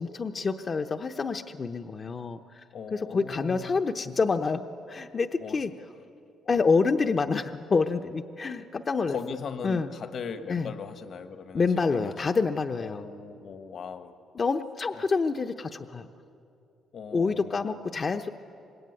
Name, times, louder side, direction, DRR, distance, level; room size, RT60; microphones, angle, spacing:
voice 1, 0.0-2.4 2.9-5.7 6.5-9.2 9.6-9.9 10.5-10.7 11.5-13.1 14.3-16.1 17.1-18.3, left 4 dB, 40° left, 7 dB, 0.8 m, -27 dB
voice 2, 2.7-3.8 5.4-5.6 6.4-6.6 9.1-12.1 12.8-14.1 16.9-17.7, left 6 dB, 60° left, 9 dB, 1.5 m, -39 dB
25.5 x 21.0 x 9.7 m, 2.7 s
cardioid pair, 90°, 0 cm